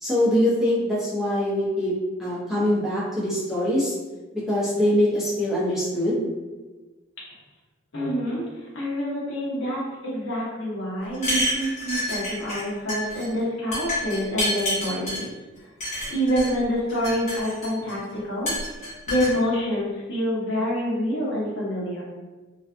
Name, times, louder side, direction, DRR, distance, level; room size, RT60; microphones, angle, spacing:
voice 1, 0.0-1.9 2.2-4.0 4.5-6.3, left 1 dB, ahead, -9 dB, 0.5 m, -23 dB
voice 2, 7.9-15.3 16.1-18.5 19.1-22.0, equal, 75° left, -6 dB, 0.8 m, -27 dB
sound 1, 11.1-12.6 12.9-13.3 13.7-15.2 15.8-16.5 16.9-17.9 18.5-19.3, equal, 35° left, 1.0 m, -28 dB
2.5 x 2.2 x 2.4 m, 1.2 s
head